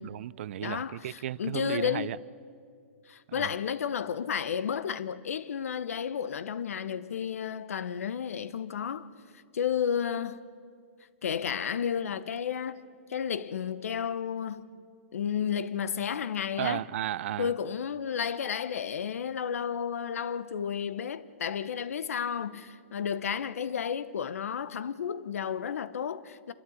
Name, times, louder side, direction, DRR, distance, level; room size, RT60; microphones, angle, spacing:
voice 1, 0.0-2.2 3.3-3.5 16.6-17.5, right 12 dB, 55° right, 0.5 m, -34 dB
voice 2, 0.6-2.1 3.1-9.1 9.5-10.4 11.2-12.8 13.1-14.7 15.1-16.8 17.4-26.5, left 8 dB, 85° left, 1.0 m, -32 dB
28.0 x 13.0 x 8.6 m
hypercardioid pair, 155°, 8 cm